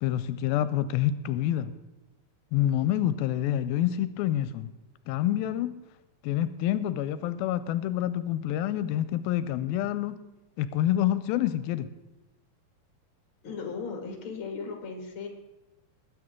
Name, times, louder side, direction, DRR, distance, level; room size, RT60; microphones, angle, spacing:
voice 1, 0.0-1.7 2.5-4.7 5.1-5.8 6.2-10.2 10.6-11.9, left 12 dB, 90° left, 13 dB, 2.4 m, -27 dB
voice 2, 13.4-15.3, left 5 dB, 40° left, 3 dB, 2.4 m, -36 dB
20.5 x 9.0 x 3.7 m, 1.0 s
omnidirectional pair, 4.2 m